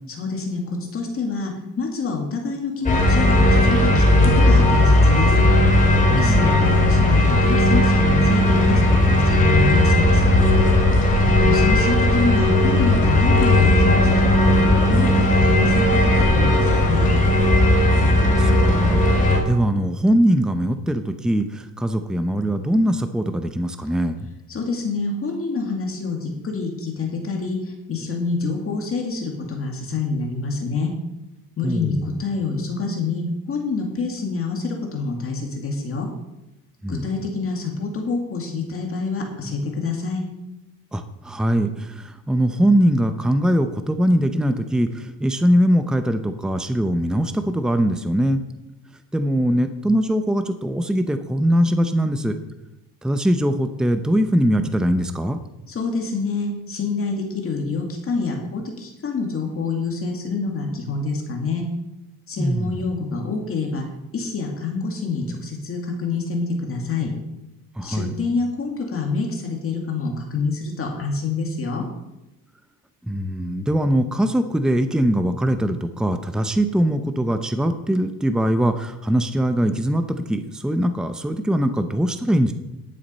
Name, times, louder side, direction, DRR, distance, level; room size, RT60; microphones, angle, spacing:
voice 1, 0.1-4.0 4.4-5.4 6.1-10.5 11.4-14.6 14.8-17.1 24.5-30.9 31.6-36.1 36.9-40.2 55.7-61.6 62.3-63.8 64.1-67.1 67.8-71.8, left 4 dB, 40° left, 1 dB, 2.2 m, -26 dB
sound 1, 2.9-19.4, left 1 dB, 20° left, 2.4 m, -16 dB
voice 2, 6.1-6.5 11.2-11.4 18.1-24.3 31.6-32.2 36.8-37.0 40.9-48.4 49.1-52.4 53.0-55.4 62.4-62.7 67.8-68.1 73.1-82.5, equal, ahead, 8 dB, 0.7 m, -21 dB
11.0 x 7.1 x 5.5 m, 0.93 s
cardioid pair, 125°, 35 cm